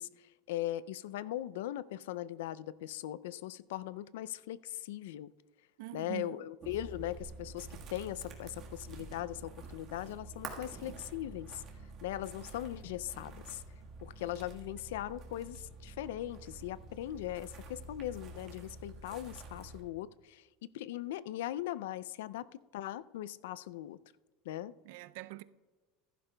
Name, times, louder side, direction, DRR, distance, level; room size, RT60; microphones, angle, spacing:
voice 1, 0.0-5.3 5.9-11.6 12.0-13.6 14.0-24.0 24.5-24.7, left 13 dB, 85° left, 0.3 m, -40 dB
voice 2, 5.8-6.5 24.8-25.4, right 19 dB, 65° right, 0.4 m, -44 dB
sound 1, 6.6-19.8, right 3 dB, 35° right, 1.4 m, -48 dB
15.0 x 11.5 x 2.2 m
supercardioid pair, 155°, 0 cm